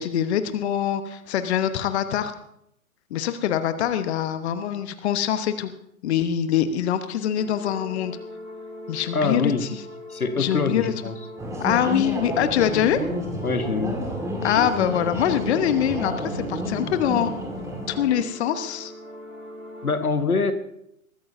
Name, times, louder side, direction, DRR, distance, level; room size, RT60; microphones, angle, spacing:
voice 1, 0.0-2.3 3.1-5.7 6.0-8.2 8.9-9.8 10.4-10.9 11.6-13.0 14.4-17.3 17.9-18.9, left 10 dB, 50° left, 10 dB, 1.1 m, -24 dB
sound 1, 7.3-19.9, equal, 85° right, 7.0 m, -41 dB
voice 2, 9.1-9.7 10.1-11.2 13.4-14.0 19.8-20.5, left 4 dB, 85° left, 9 dB, 1.4 m, -24 dB
sound 2, 11.4-18.1, equal, 5° right, 1.9 m, -30 dB
22.0 x 13.5 x 2.7 m, 0.76 s
figure-of-eight pair, 115°, 42 cm